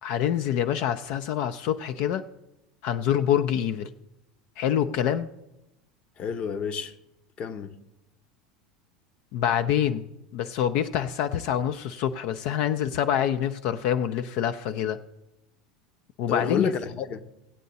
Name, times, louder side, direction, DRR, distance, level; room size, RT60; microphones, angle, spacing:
voice 1, 0.0-2.2 2.8-3.9 4.6-5.3 9.3-10.1 10.3-15.0 16.2-16.7, left 10 dB, 60° left, 0.5 m, -26 dB
voice 2, 6.2-6.9 7.4-7.7 16.3-17.2, left 6 dB, 45° left, 0.9 m, -29 dB
16.5 x 8.3 x 4.1 m
hypercardioid pair, 80°, 3 cm